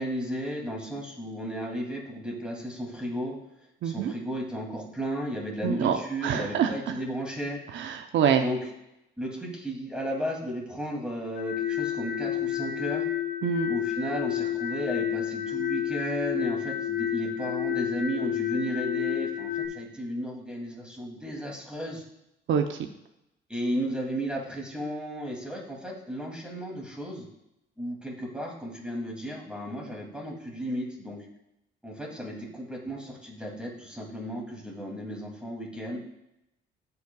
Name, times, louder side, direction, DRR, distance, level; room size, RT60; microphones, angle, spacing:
voice 1, 0.0-3.4 3.8-7.6 8.4-8.6 9.2-13.0 13.7-22.0 23.5-27.3 27.8-31.2 31.8-36.0, equal, 5° right, -2 dB, 2.7 m, -34 dB
voice 2, 3.8-4.1 5.6-6.0 6.2-6.7 7.7-8.4 13.4-13.7 22.5-22.8, right 8 dB, 70° right, 5 dB, 0.7 m, -25 dB
sound 1, 11.4-19.7, left 11 dB, 80° left, 1.5 m, -30 dB
14.0 x 5.7 x 2.4 m, 0.86 s
cardioid pair, 90°, 20 cm